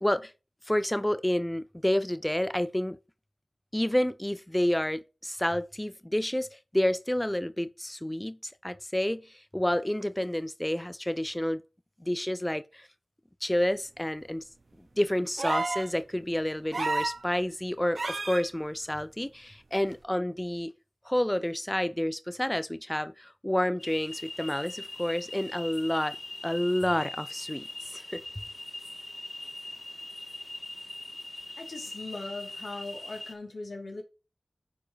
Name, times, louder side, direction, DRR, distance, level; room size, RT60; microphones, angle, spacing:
voice 1, 0.0-0.3 0.6-3.0 3.7-11.6 12.0-12.9 13.4-14.4 15.0-20.7 21.0-26.2 26.4-28.2, left 1 dB, 15° left, 0.5 m, -29 dB
sound 1, 15.4-15.9 16.7-17.2 18.0-18.4 19.9-20.0, right 3 dB, 75° right, 0.9 m, -30 dB
sound 2, 23.8-33.3, left 1 dB, 40° left, 2.3 m, -42 dB
voice 2, 31.6-34.0, left 2 dB, 90° left, 2.6 m, -39 dB
9.9 x 4.7 x 5.1 m
wide cardioid pair, 60°, 0 cm